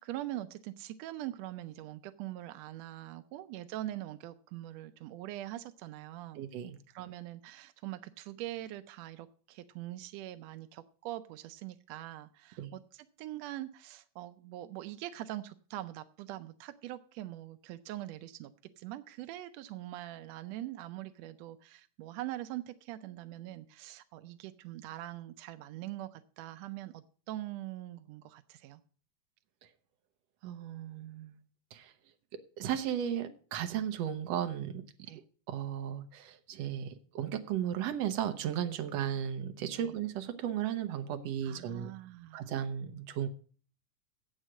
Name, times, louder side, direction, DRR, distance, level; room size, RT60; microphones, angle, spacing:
voice 1, 0.0-6.4 6.9-18.5 18.8-28.8 35.1-35.2 39.8-39.9 41.4-42.5, right 14 dB, 85° right, 11 dB, 1.5 m, -43 dB
voice 2, 6.4-6.8 12.6-12.7 30.4-31.4 31.7-31.9 32.6-34.8 35.5-41.9 42.3-43.3, right 10 dB, 65° right, 8 dB, 1.8 m, -35 dB
8.1 x 7.8 x 7.3 m, 0.43 s
omnidirectional pair, 3.6 m